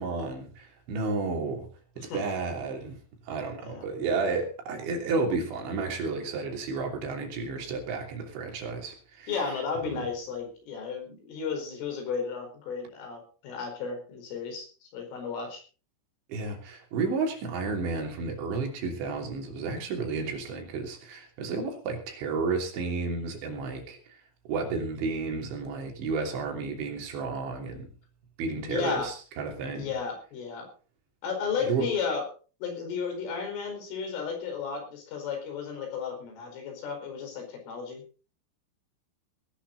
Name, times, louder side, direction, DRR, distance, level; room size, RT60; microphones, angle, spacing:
voice 1, 0.0-1.7 2.0-3.0 3.3-9.3 9.8-10.1 16.3-24.2 24.5-27.9 28.4-29.9 31.7-31.9, right 4 dB, 65° right, 2 dB, 5.3 m, -32 dB
voice 2, 9.3-15.6 28.6-29.1 29.7-30.7 31.2-32.2 32.6-38.0, left 6 dB, 75° left, 4 dB, 7.3 m, -33 dB
19.0 x 12.0 x 4.1 m, 0.37 s
omnidirectional pair, 5.8 m